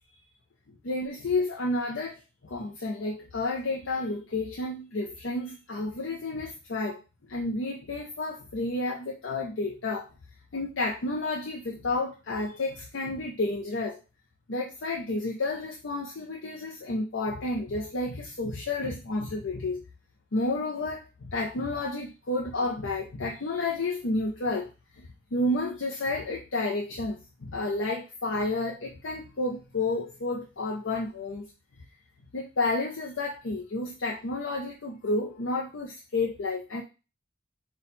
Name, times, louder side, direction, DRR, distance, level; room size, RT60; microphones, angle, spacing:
voice 1, 0.8-7.0 7.3-10.1 10.5-14.0 14.5-19.8 20.3-31.5 32.3-36.8, left 2 dB, 80° left, -1 dB, 0.6 m, -31 dB
4.0 x 2.4 x 4.3 m, 0.30 s
head